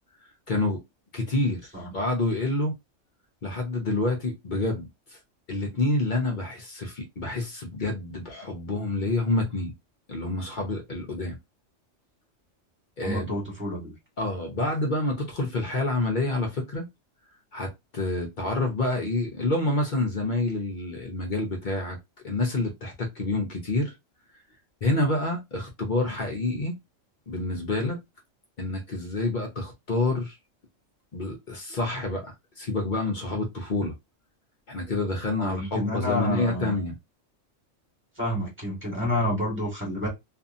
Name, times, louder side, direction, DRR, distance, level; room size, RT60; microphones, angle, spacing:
voice 1, 0.5-0.8 1.1-2.7 3.4-5.2 5.5-9.7 10.1-11.4 13.0-13.4 14.2-16.9 17.5-22.0 22.2-23.9 24.8-26.8 27.3-28.0 28.6-30.4 31.1-34.0 34.7-36.9, left 2 dB, 45° left, 0.7 m, -28 dB
voice 2, 13.0-13.9 35.4-36.8 38.2-40.1, equal, 10° right, 1.5 m, -29 dB
2.7 x 2.4 x 2.5 m
omnidirectional pair, 1.3 m